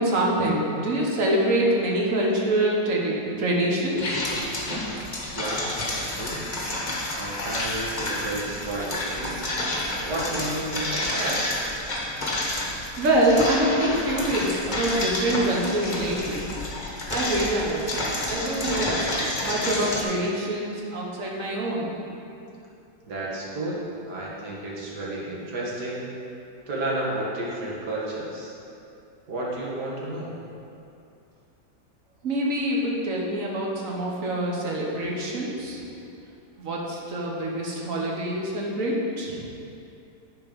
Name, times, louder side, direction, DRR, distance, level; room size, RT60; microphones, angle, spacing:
voice 1, 0.0-4.2 13.0-16.4 17.1-17.8 18.3-19.1 19.4-21.9 32.2-35.8 36.6-39.4, right 1 dB, 55° right, -2 dB, 1.6 m, -25 dB
sound 1, 4.0-20.0, left 1 dB, 30° left, 1.1 m, -30 dB
voice 2, 5.3-6.4 7.2-9.4 10.0-11.4 23.1-26.1 26.7-28.5 29.3-30.3, right 1 dB, 70° right, -5 dB, 2.1 m, -32 dB
10.5 x 4.5 x 5.3 m, 2.6 s
omnidirectional pair, 1.8 m